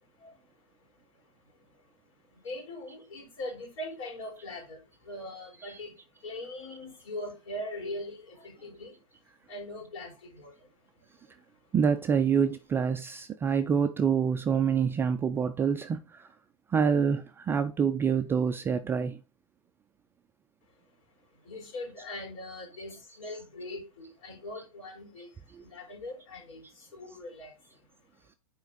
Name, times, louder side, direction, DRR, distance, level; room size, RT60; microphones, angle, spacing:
voice 1, 0.2-1.9 2.3-9.0 9.4-10.7 11.0-11.4 21.3-28.0, left 1 dB, 60° left, 3.8 m, -42 dB
voice 2, 11.7-16.0 16.7-19.2, right 6 dB, 10° right, 0.3 m, -26 dB
7.0 x 4.3 x 3.8 m
hypercardioid pair, 120°, 19 cm